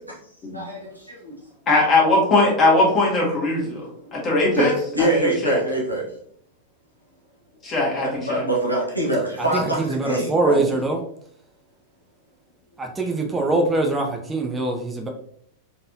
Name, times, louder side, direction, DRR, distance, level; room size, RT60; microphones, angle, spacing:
voice 1, 0.5-1.3 4.0-4.2 4.5-6.0 8.0-10.6, right 1 dB, 90° left, -3 dB, 1.1 m, -24 dB
voice 2, 1.7-3.9 4.1-4.7 5.0-5.6 7.6-8.4, left 2 dB, 25° left, -4 dB, 1.7 m, -20 dB
voice 3, 9.4-11.0 12.8-15.1, right 2 dB, 15° right, 2 dB, 0.6 m, -23 dB
4.2 x 3.3 x 2.7 m, 0.67 s
figure-of-eight pair, 90°, 0 cm